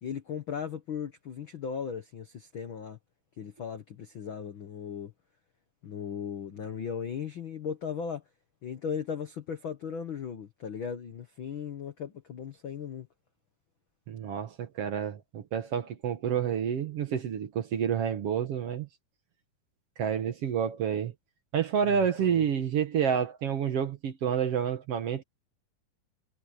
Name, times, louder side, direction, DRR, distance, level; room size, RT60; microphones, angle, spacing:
voice 1, 0.0-3.0 3.4-5.1 5.8-8.2 8.6-13.1 21.9-22.5, left 7 dB, 70° left, 1.2 m, -37 dB
voice 2, 14.1-18.9 20.0-21.1 21.5-25.2, right 8 dB, 60° right, 1.7 m, -29 dB
omnidirectional pair, 4.2 m